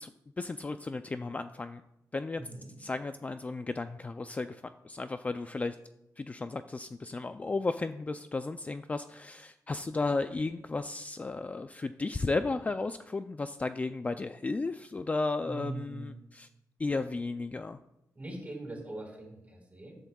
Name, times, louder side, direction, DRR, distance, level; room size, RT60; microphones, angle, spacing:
voice 1, 0.0-1.8 2.1-2.4 2.8-5.8 6.2-16.5 16.8-17.8, left 3 dB, 25° left, 10 dB, 0.3 m, -34 dB
voice 2, 2.4-2.7 15.4-16.2 18.1-20.0, right 2 dB, 25° right, -1 dB, 4.1 m, -42 dB
13.5 x 11.5 x 2.3 m, 0.88 s
wide cardioid pair, 120°, 6 cm